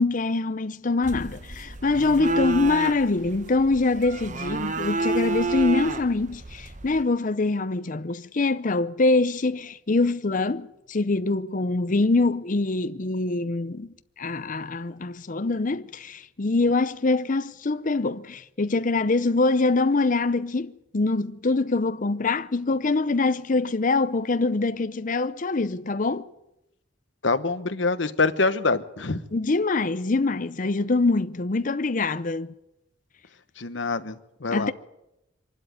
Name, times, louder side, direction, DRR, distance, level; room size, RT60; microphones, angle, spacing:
voice 1, 0.0-13.9 14.2-26.2 29.3-32.5 34.5-34.7, left 3 dB, 40° left, 0.6 m, -24 dB
sound 1, 1.0-7.0, right 3 dB, 40° right, 0.9 m, -30 dB
voice 2, 27.2-29.2 33.6-34.7, left 3 dB, 65° left, 1.1 m, -25 dB
24.0 x 12.0 x 9.4 m
head